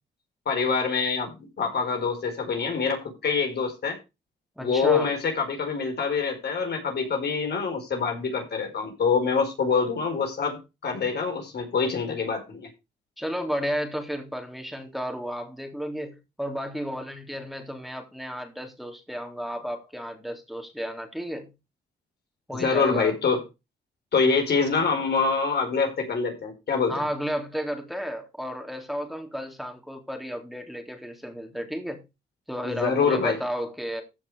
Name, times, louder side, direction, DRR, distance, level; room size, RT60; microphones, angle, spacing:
voice 1, 0.5-4.0 4.6-12.7 22.5-23.4 24.1-27.0 32.6-33.4, left 5 dB, 60° left, 4.8 m, -25 dB
voice 2, 4.6-5.1 13.2-21.5 22.5-23.1 26.9-32.0 32.5-34.0, equal, ahead, 3.5 m, -33 dB
15.0 x 5.9 x 4.8 m
supercardioid pair, 60°, 19 cm